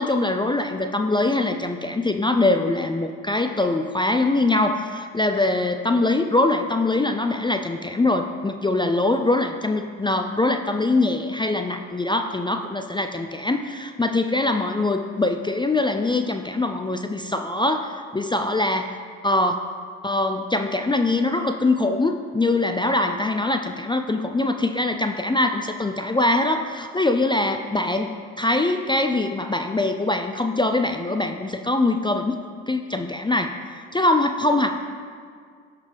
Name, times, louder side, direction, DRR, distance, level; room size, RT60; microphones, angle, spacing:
voice 1, 0.0-18.9 19.2-19.5 20.0-32.4 32.7-34.7, left 2 dB, 10° left, 5 dB, 0.5 m, -23 dB
15.5 x 5.9 x 3.4 m, 2.1 s
hypercardioid pair, 55°, 42 cm